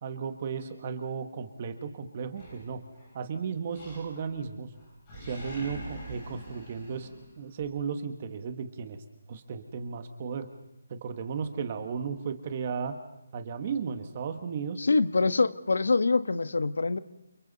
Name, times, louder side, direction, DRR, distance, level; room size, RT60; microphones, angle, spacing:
voice 1, 0.0-2.8 3.1-4.7 5.3-7.1 7.4-9.0 9.3-10.5 10.9-12.9 13.3-14.8, right 6 dB, 20° right, 9 dB, 1.4 m, -35 dB
Animal, 2.3-3.2 3.7-4.5 4.7-7.7, right 1 dB, 15° left, 7.7 m, -44 dB
voice 2, 14.8-17.0, left 3 dB, 70° left, 13 dB, 1.3 m, -25 dB
29.5 x 27.0 x 4.1 m, 0.92 s
hypercardioid pair, 180°, 0 cm